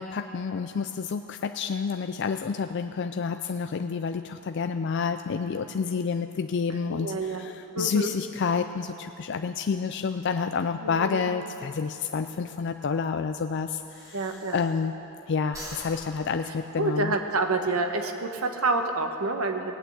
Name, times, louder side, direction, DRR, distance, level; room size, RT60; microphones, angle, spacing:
voice 1, 0.0-14.9 15.3-17.1, left 5 dB, 55° left, 8 dB, 0.4 m, -29 dB
voice 2, 6.8-8.1 10.8-11.3 14.1-14.6 16.8-19.6, right 3 dB, 85° right, 5 dB, 1.2 m, -28 dB
Breathing, 12.6-15.1 15.4-17.4, equal, 15° right, 1.9 m, -45 dB
18.5 x 8.7 x 8.0 m, 2.9 s
head